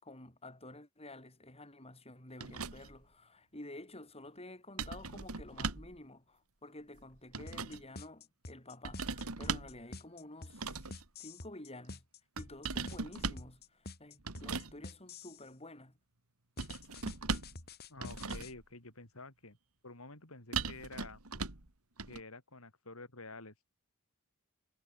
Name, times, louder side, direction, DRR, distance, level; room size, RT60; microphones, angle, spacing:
voice 1, 0.0-10.9 11.2-12.0 12.4-15.9, left 1 dB, 25° left, 7.1 m, -51 dB
sound 1, 2.4-3.0 4.8-6.0 7.0-7.8 8.8-9.8 10.5-11.0 12.4-13.5 14.3-14.7 16.6-17.6 18.0-18.6 20.5-21.7 22.0-22.2, right 4 dB, 80° right, 2.6 m, -39 dB
sound 2, 7.5-15.5 16.6-18.5, left 2 dB, 45° left, 3.7 m, -48 dB
voice 2, 17.9-19.6 19.8-21.2 22.1-23.5, left 3 dB, 70° left, 4.6 m, -50 dB
head